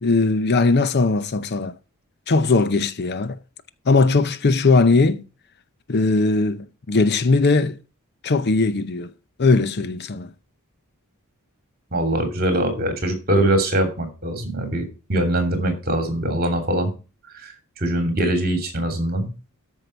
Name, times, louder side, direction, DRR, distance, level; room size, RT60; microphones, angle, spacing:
voice 1, 0.0-1.8 2.3-3.4 3.9-5.2 5.9-7.8 8.2-9.1 9.4-10.3, left 3 dB, 50° left, 0.6 m, -19 dB
voice 2, 11.9-16.9 17.3-19.3, right 1 dB, 45° right, 2.9 m, -22 dB
13.0 x 5.6 x 4.4 m
head